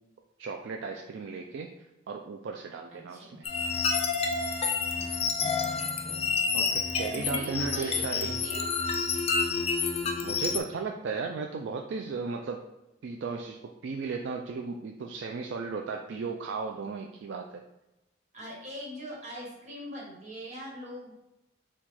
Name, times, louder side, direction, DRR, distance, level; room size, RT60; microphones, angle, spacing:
voice 1, 0.4-1.7 2.1-3.5 6.5-8.4 10.2-12.6 13.0-17.6, right 4 dB, 70° right, 2 dB, 0.3 m, -35 dB
voice 2, 2.9-3.4 4.9-6.4 7.1-8.6 18.3-21.1, equal, 40° right, -4 dB, 1.4 m, -42 dB
sound 1, 3.4-10.6, left 5 dB, 35° left, 0.4 m, -29 dB
4.5 x 2.4 x 4.1 m, 0.94 s
head